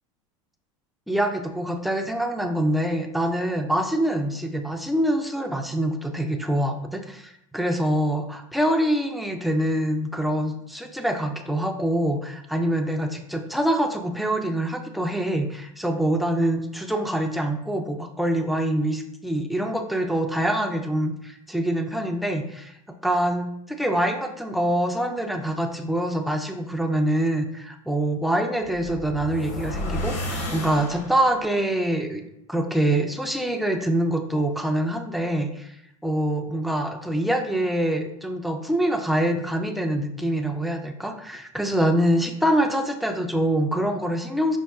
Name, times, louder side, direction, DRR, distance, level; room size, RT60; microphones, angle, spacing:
voice 1, 1.1-22.8 23.0-32.2 32.5-35.8 36.0-44.6, right 1 dB, ahead, 5 dB, 0.3 m, -25 dB
sound 1, 28.6-31.5, left 1 dB, 45° left, 1.1 m, -32 dB
5.3 x 2.3 x 2.3 m, 0.79 s
hypercardioid pair, 105°, 17 cm